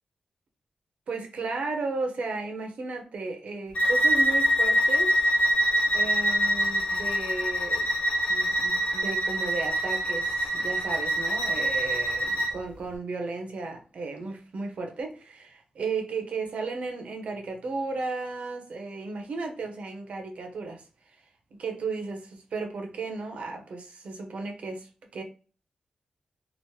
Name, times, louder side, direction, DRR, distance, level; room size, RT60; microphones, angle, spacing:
voice 1, 1.1-5.2 5.9-7.9 8.3-20.8 21.6-24.9 25.1-25.2, right 3 dB, 70° right, 0.7 m, -34 dB
Bowed string instrument, 3.7-12.5, equal, 75° left, 0.7 m, -25 dB
2.9 x 2.0 x 2.9 m
wide cardioid pair, 165°, 2 cm